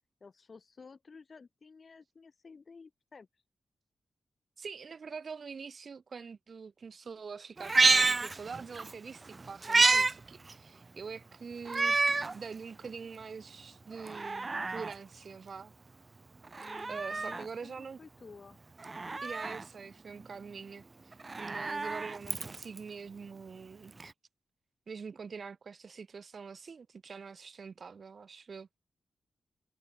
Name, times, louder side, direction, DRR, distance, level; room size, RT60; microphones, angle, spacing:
voice 1, 0.2-3.3 16.6-18.6, left 4 dB, 35° left, 5.4 m, -53 dB
voice 2, 4.6-15.7 16.9-18.0 19.2-23.9 24.9-28.7, right 5 dB, 45° right, 0.7 m, -44 dB
Meow, 7.6-8.9 9.3-10.1 10.5-10.6 11.7-12.3 12.9-13.0 13.9-14.9 16.5-17.5 18.8-19.6 21.1-22.8 24.0-24.1, right 3 dB, 25° right, 0.3 m, -29 dB
wide cardioid pair, 175°, 0 cm